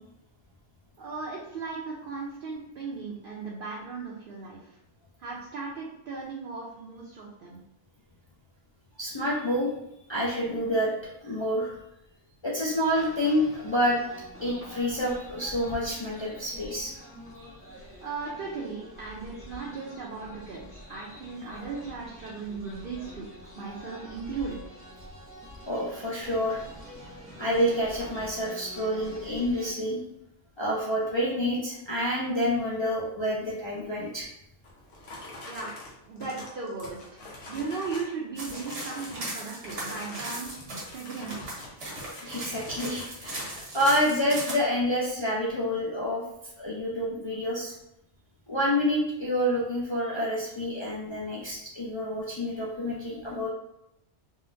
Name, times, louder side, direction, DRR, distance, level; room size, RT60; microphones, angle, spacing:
voice 1, 1.0-4.8 5.2-7.6 18.0-23.3 23.5-24.9 35.5-35.8 36.1-41.5, right 4 dB, 60° right, -5 dB, 0.7 m, -37 dB
voice 2, 9.0-9.7 10.1-10.9 11.2-11.7 12.4-14.0 14.4-16.9 25.7-26.6 27.4-30.0 30.6-34.3 42.2-43.4 43.7-46.2 46.6-47.7 48.5-53.5, equal, 45° left, -7 dB, 0.3 m, -28 dB
sound 1, 12.8-29.7, equal, 15° right, 0.7 m, -46 dB
sound 2, 34.6-38.1 38.4-39.3 39.6-43.7, left 1 dB, 90° left, 1.1 m, -44 dB
sound 3, 38.4-44.5, right 2 dB, 75° right, 1.3 m, -38 dB
3.8 x 2.1 x 2.6 m, 0.83 s
omnidirectional pair, 1.2 m